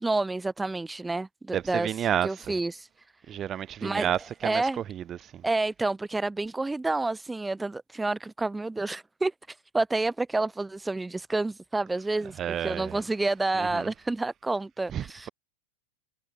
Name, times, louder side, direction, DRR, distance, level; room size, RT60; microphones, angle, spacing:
voice 1, 0.0-3.1 3.8-4.1 4.4-4.8 5.4-15.3, right 2 dB, 10° right, 1.2 m, -29 dB
voice 2, 1.5-2.5 3.3-4.6 4.9-5.4 12.4-13.0 13.6-13.9 14.9-15.3, right 10 dB, 25° right, 0.4 m, -31 dB
figure-of-eight pair, 90°, 0 cm